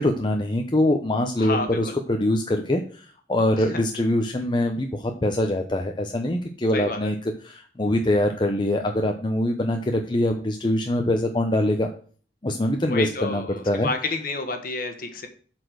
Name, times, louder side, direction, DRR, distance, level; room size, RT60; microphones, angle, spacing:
voice 1, 0.0-11.9 12.4-13.9, left 1 dB, 25° left, 3 dB, 0.7 m, -24 dB
voice 2, 1.4-2.0 6.7-7.1 12.9-15.3, left 3 dB, 55° left, 6 dB, 1.4 m, -30 dB
7.9 x 4.4 x 6.2 m, 0.42 s
head